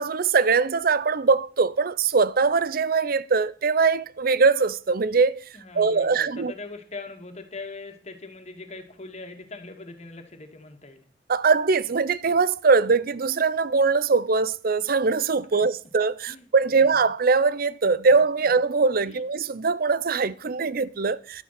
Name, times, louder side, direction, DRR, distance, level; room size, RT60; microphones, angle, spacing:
voice 1, 0.0-5.4 5.7-6.5 11.3-21.4, right 4 dB, 50° right, 0.6 m, -22 dB
voice 2, 5.5-11.0 15.5-15.6 16.3-16.5 16.7-16.9 19.0-19.2, left 3 dB, 35° left, 2.2 m, -41 dB
11.5 x 9.7 x 5.9 m
head